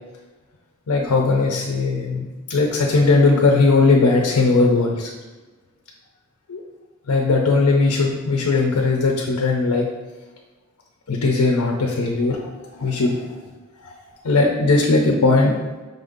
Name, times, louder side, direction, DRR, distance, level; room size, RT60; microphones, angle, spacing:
voice 1, 0.9-5.1 6.5-6.6 7.1-9.9 11.1-12.5 12.8-13.2 14.2-15.6, left 3 dB, 85° left, 0 dB, 0.6 m, -18 dB
5.4 x 2.6 x 3.7 m, 1.2 s
head